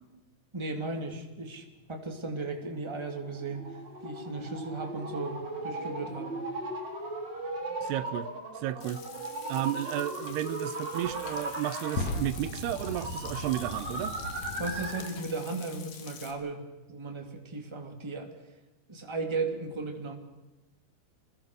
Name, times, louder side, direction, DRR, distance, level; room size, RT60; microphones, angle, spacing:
voice 1, 0.5-3.7 4.0-6.4 14.6-16.6 16.9-18.3 18.9-20.2, right 3 dB, 10° right, 3 dB, 2.3 m, -36 dB
sound 1, 2.5-15.2, right 2 dB, 30° right, 4.2 m, -38 dB
voice 2, 7.8-9.1 9.5-14.1, right 13 dB, 85° right, 14 dB, 3.0 m, -33 dB
Frying (food), 8.8-16.3, left 7 dB, 80° left, 4.4 m, -48 dB
sound 2, 10.2-10.4 11.0-15.3, left 2 dB, 50° left, 2.6 m, -38 dB
29.0 x 21.0 x 6.6 m, 1.1 s
omnidirectional pair, 4.6 m